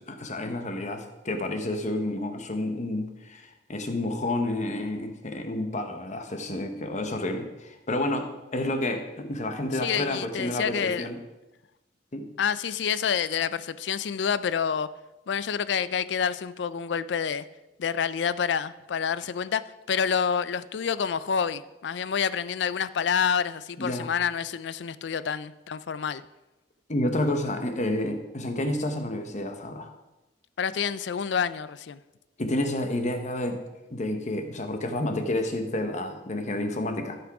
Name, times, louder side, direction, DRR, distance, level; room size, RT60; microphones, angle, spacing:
voice 1, 0.0-11.2 12.1-12.3 23.8-24.1 26.9-29.9 32.4-33.6 33.9-37.2, left 1 dB, 40° left, 6 dB, 1.1 m, -30 dB
voice 2, 9.8-11.1 12.4-14.9 15.3-17.5 17.8-19.6 19.9-26.2 30.6-32.0, left 7 dB, 65° left, 16 dB, 0.4 m, -28 dB
13.5 x 6.1 x 4.8 m, 1.0 s
head